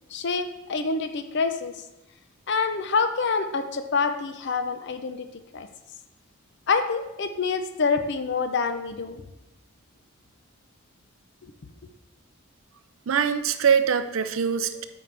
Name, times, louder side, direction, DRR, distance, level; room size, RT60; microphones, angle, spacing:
voice 1, 0.1-1.8 2.5-5.3 5.5-5.7 6.7-9.2 11.4-11.5, left 4 dB, 50° left, 9 dB, 0.5 m, -26 dB
voice 2, 13.1-14.9, right 7 dB, 65° right, 11 dB, 0.5 m, -23 dB
8.6 x 5.1 x 3.3 m, 0.94 s
head